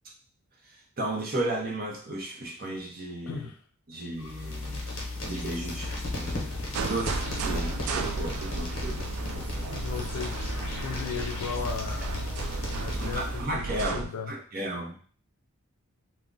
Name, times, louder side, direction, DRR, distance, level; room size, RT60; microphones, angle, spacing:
voice 1, 1.0-3.5 3.9-4.8 5.2-9.0 9.3-9.7 12.9-15.1, right 1 dB, 40° right, 0 dB, 0.6 m, -34 dB
voice 2, 3.3-3.6 9.7-10.4 10.8-14.4, left 6 dB, 80° left, 7 dB, 0.4 m, -37 dB
sound 1, 4.1-13.6, left 2 dB, 60° left, 0.8 m, -35 dB
sound 2, 6.7-14.0, right 4 dB, 90° right, 0.3 m, -34 dB
2.3 x 2.1 x 3.7 m, 0.43 s
head